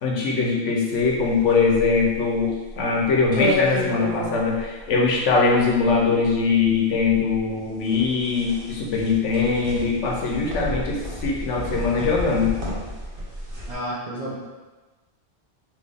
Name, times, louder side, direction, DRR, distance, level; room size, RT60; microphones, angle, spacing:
voice 1, 0.0-12.5, left 4 dB, 85° left, -2 dB, 1.1 m, -22 dB
sound 1, 1.1-13.7, left 1 dB, 50° right, 1.1 m, -31 dB
voice 2, 13.7-14.3, right 1 dB, 35° right, -6 dB, 0.8 m, -30 dB
4.5 x 2.7 x 3.4 m, 1.2 s
omnidirectional pair, 1.2 m